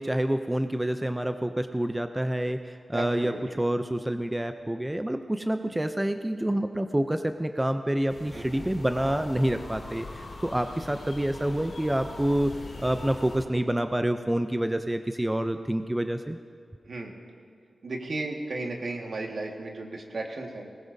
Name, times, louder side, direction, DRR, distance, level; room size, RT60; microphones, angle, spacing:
voice 1, 0.0-12.5 12.8-16.4, right 1 dB, 10° right, 8 dB, 0.4 m, -28 dB
voice 2, 2.9-3.6 8.3-8.7 16.9-17.1 17.8-20.7, right 2 dB, 65° right, 1 dB, 1.7 m, -35 dB
sound 1, 8.1-13.5, left 2 dB, 70° left, 2.7 m, -41 dB
20.0 x 19.5 x 2.7 m, 2.2 s
wide cardioid pair, 105°, 0 cm